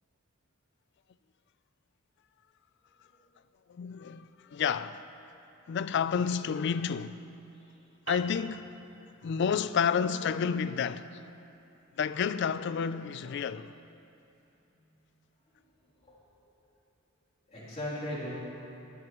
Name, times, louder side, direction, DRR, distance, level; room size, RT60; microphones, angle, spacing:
voice 1, 3.7-5.0 5.7-7.2 8.1-8.7 9.2-11.1 12.0-13.7, left 6 dB, 50° left, 0.3 m, -30 dB
sound 1, 8.1-12.8, right 4 dB, 90° right, 0.9 m, -48 dB
voice 2, 15.8-16.3 17.5-18.4, left 1 dB, 30° left, 3.1 m, -40 dB
19.0 x 10.5 x 3.0 m
head